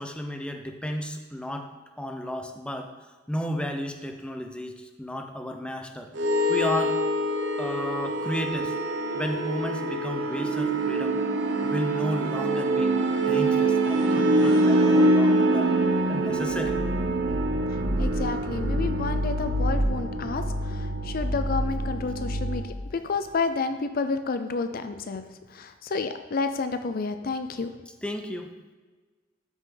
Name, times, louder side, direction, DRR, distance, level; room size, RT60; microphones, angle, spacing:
voice 1, 0.0-1.7 2.0-2.9 3.3-6.1 6.5-7.0 7.6-8.7 9.1-11.2 11.6-15.7 16.1-16.8 28.0-28.5, left 1 dB, 5° left, 4 dB, 0.7 m, -33 dB
sound 1, 6.2-22.7, right 1 dB, 75° right, 1.0 m, -25 dB
voice 2, 18.0-25.2 25.5-27.7, left 4 dB, 50° left, 9 dB, 0.5 m, -30 dB
12.5 x 6.1 x 3.9 m, 1.3 s
head